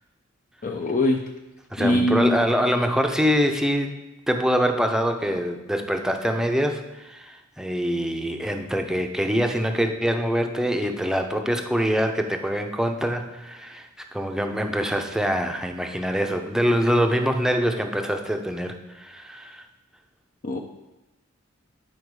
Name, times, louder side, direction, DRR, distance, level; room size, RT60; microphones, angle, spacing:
voice 1, 0.6-1.2 1.8-2.4 20.4-20.6, left 1 dB, 40° left, 2 dB, 0.6 m, -22 dB
voice 2, 1.7-3.9 4.3-19.6, equal, 5° right, 4 dB, 0.6 m, -24 dB
9.6 x 4.7 x 4.7 m, 1.0 s
head